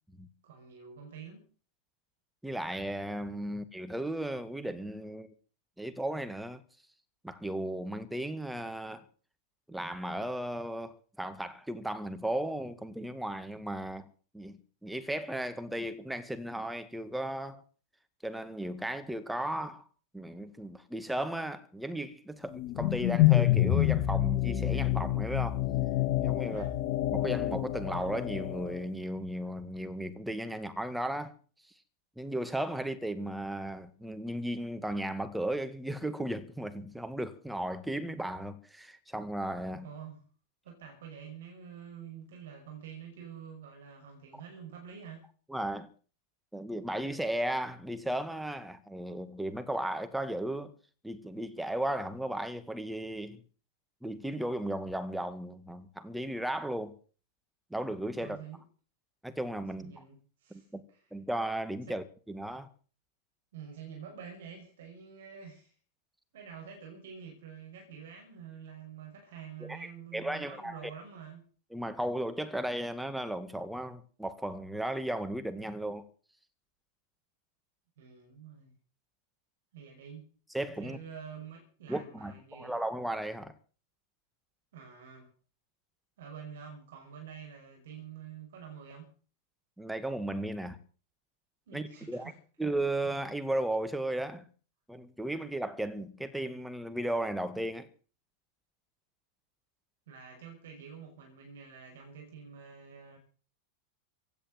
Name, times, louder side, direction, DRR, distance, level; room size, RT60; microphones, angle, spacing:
voice 1, 0.4-1.4 26.5-26.8 39.8-40.2 40.6-45.2 58.2-58.6 59.8-61.0 61.9-62.0 63.5-65.7 66.3-71.4 78.0-78.7 79.7-80.3 80.8-82.7 84.7-85.3 86.2-89.1 91.7-92.4 100.1-103.2, right 7 dB, 60° right, 5.6 m, -47 dB
voice 2, 2.4-5.3 5.8-6.6 7.2-9.0 9.7-14.1 14.3-17.6 18.2-19.8 20.1-25.6 26.2-26.7 27.1-31.3 32.2-39.9 45.5-45.9 46.5-50.7 51.0-53.4 54.0-57.0 57.7-58.4 59.2-60.0 60.5-60.8 61.1-62.7 69.6-70.8 71.7-76.1 80.5-81.0 81.9-83.5 89.8-90.8 91.7-92.3 92.6-94.4 94.9-97.9, right 1 dB, 5° right, 2.0 m, -35 dB
sound 1, 22.5-28.8, left 14 dB, 45° left, 1.3 m, -27 dB
16.0 x 10.0 x 7.9 m
figure-of-eight pair, 90°, 0 cm